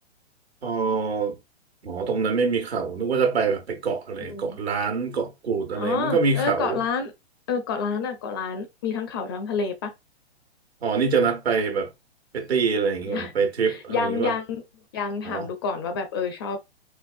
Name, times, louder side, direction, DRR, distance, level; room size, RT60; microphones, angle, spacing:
voice 1, 0.6-1.4 1.8-6.8 10.8-11.9 12.3-14.3 15.2-15.5, right 5 dB, 70° right, 1.2 m, -25 dB
voice 2, 4.2-4.6 5.7-7.1 7.5-9.9 13.1-13.3 13.7-14.6 14.9-16.6, left 5 dB, 25° left, 0.4 m, -28 dB
4.4 x 2.4 x 2.4 m
figure-of-eight pair, 115°, 33 cm